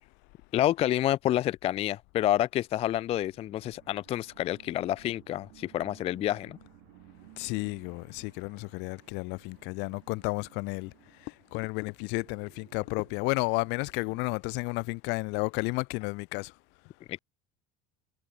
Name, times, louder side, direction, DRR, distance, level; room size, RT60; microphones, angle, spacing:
voice 1, 0.5-6.6 17.1-17.2, left 13 dB, 30° left, 0.4 m, -28 dB
sound 1, 3.3-14.3, right 38 dB, 70° right, 4.7 m, -58 dB
voice 2, 7.4-10.9 11.2-16.5, left 28 dB, 60° left, 1.1 m, -32 dB
supercardioid pair, 140°, 20 cm